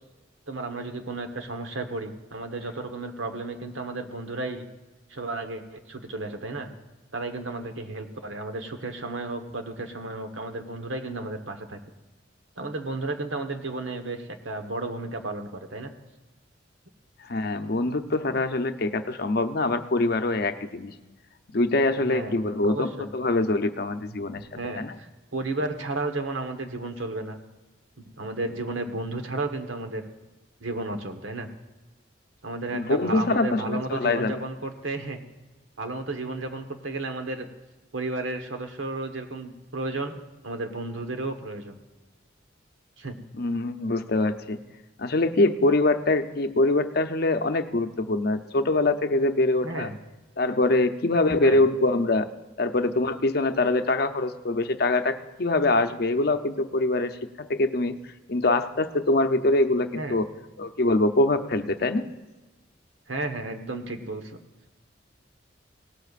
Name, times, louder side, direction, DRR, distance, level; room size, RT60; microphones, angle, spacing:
voice 1, 0.5-4.7 5.1-6.7 7.1-11.8 12.6-15.9 22.1-23.1 24.6-27.4 28.2-30.0 30.6-31.5 32.4-35.2 35.8-37.5 37.9-40.1 40.4-41.8 43.0-43.2 49.6-50.0 51.4-51.6 59.9-60.2 63.1-64.4, right 2 dB, 80° right, 5 dB, 1.3 m, -33 dB
voice 2, 17.3-20.9 21.5-24.4 24.8-24.9 32.7-34.3 43.4-44.6 45.0-49.9 50.4-52.3 52.6-57.9 58.3-60.3 60.6-62.1, left 2 dB, 55° left, 9 dB, 0.7 m, -24 dB
18.5 x 13.5 x 2.5 m, 1.2 s
head